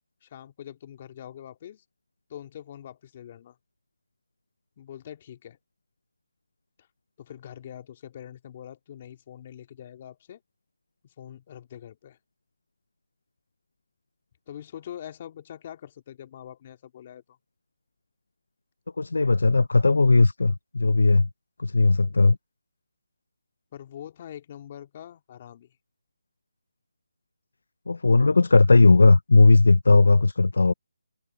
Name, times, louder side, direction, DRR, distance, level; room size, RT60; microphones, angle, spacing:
voice 1, 0.2-1.8 2.3-3.6 4.8-5.6 7.2-10.4 11.0-12.2 14.5-17.4 23.7-25.7, left 10 dB, 30° left, 2.5 m, -43 dB
voice 2, 19.0-21.3 21.6-22.4 27.9-30.7, left 3 dB, 80° left, 0.4 m, -17 dB
hypercardioid pair, 165°, 0 cm